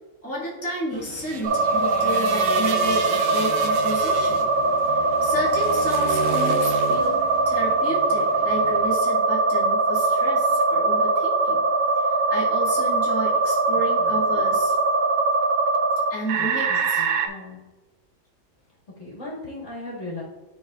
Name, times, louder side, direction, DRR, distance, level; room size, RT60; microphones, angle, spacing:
voice 1, 0.2-4.5 4.8-11.6 12.0-14.7 16.1-17.0, equal, 10° left, -8 dB, 1.8 m, -32 dB
sound 1, 0.9-8.9, right 5 dB, 85° right, 1.4 m, -34 dB
sound 2, 1.4-17.3, right 3 dB, 65° right, 0.8 m, -22 dB
voice 2, 16.4-17.6 19.0-20.2, left 2 dB, 45° left, -7 dB, 2.1 m, -37 dB
11.5 x 4.2 x 2.4 m, 1.2 s
omnidirectional pair, 1.8 m